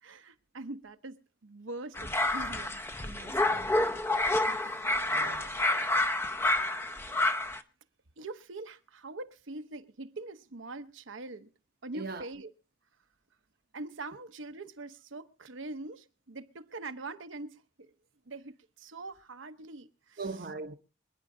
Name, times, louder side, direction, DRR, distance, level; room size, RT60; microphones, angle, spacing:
voice 1, 0.0-4.2 4.5-4.8 5.2-5.5 8.2-11.5 11.8-12.5 13.7-17.9 18.3-20.2, right 2 dB, 80° right, 0.9 m, -44 dB
sound 1, 2.0-7.6, left 2 dB, 10° left, 0.6 m, -29 dB
voice 2, 4.4-5.5 11.9-12.3 20.2-20.8, right 3 dB, 50° right, 0.8 m, -41 dB
26.5 x 9.6 x 2.7 m
head